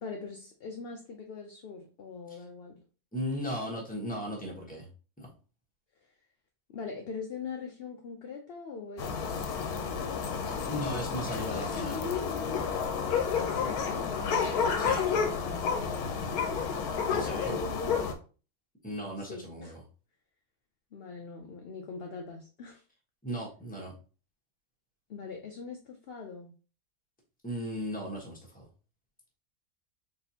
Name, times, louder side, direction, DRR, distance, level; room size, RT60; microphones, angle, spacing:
voice 1, 0.0-2.8 6.7-10.7 13.3-16.9 17.2-18.2 19.2-19.7 20.9-22.8 25.1-26.5, left 4 dB, 60° left, 2 dB, 0.6 m, -42 dB
voice 2, 3.1-4.9 5.2-5.3 10.7-12.1 14.8-15.0 17.1-17.6 18.8-19.8 23.2-23.9 27.4-28.7, equal, 5° left, -2 dB, 1.1 m, -36 dB
sound 1, 9.0-18.1, left 6 dB, 80° left, 1.2 m, -30 dB
4.1 x 3.3 x 2.8 m, 0.36 s
omnidirectional pair, 1.6 m